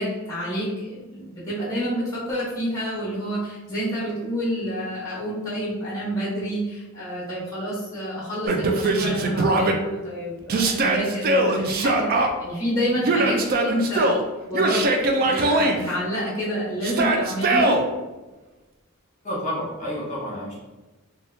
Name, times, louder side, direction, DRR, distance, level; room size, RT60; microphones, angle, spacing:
voice 1, 0.0-14.1 14.5-14.8 15.2-17.8, equal, 15° left, -7 dB, 1.0 m, -28 dB
Yell, 8.5-9.7 10.5-12.3 13.0-14.2 14.5-15.8 16.8-17.8, right 2 dB, 45° right, 0.3 m, -21 dB
voice 2, 19.2-20.6, equal, 35° left, -7 dB, 1.1 m, -29 dB
2.9 x 2.3 x 3.3 m, 1.1 s
head